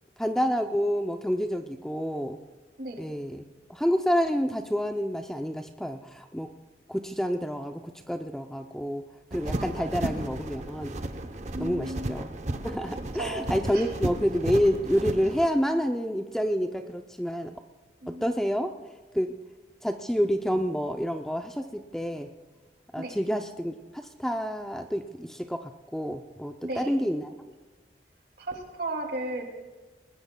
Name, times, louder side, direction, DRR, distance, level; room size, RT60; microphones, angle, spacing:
voice 1, 0.2-2.4 3.0-3.4 3.7-6.5 6.9-9.0 9.3-11.0 11.6-12.3 12.6-17.6 18.1-18.7 19.1-19.3 19.8-22.3 22.9-27.3, equal, 5° left, 5 dB, 0.4 m, -28 dB
voice 2, 2.8-3.1 9.5-9.9 11.5-12.2 13.2-13.9 18.0-18.3 23.0-23.1 26.6-27.0 28.4-29.4, right 2 dB, 55° right, 2 dB, 2.4 m, -35 dB
sound 1, 9.3-15.5, right 1 dB, 40° right, 0.7 m, -34 dB
20.5 x 20.5 x 2.2 m, 1.3 s
head